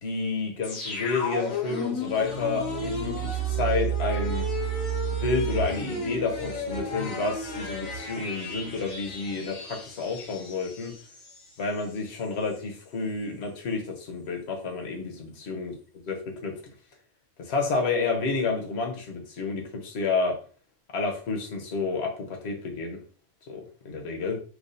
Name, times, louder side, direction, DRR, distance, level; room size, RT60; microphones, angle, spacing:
voice 1, 0.0-4.5 5.1-10.9 11.6-15.7 16.0-16.5 17.4-20.4 20.9-23.0 23.5-24.4, left 4 dB, 55° left, 1.0 m, -30 dB
sound 1, 0.6-11.4 11.8-11.9, right 2 dB, 75° left, 1.5 m, -32 dB
4.7 x 2.4 x 2.5 m
omnidirectional pair, 1.4 m